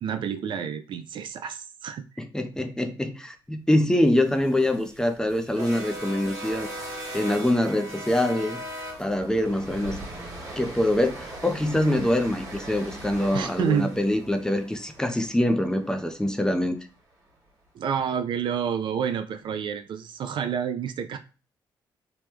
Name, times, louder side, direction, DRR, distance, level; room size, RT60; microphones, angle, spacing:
voice 1, 0.0-2.0 13.3-13.9 17.7-21.2, right 7 dB, 65° right, 8 dB, 0.4 m, -29 dB
voice 2, 2.2-6.7 7.1-8.6 9.0-10.0 10.6-16.8, left 1 dB, 5° left, 7 dB, 0.5 m, -24 dB
sound 1, 4.3-16.5, right 1 dB, 40° right, 1.4 m, -39 dB
3.0 x 2.1 x 3.3 m, 0.35 s
cardioid pair, 75°, 9 cm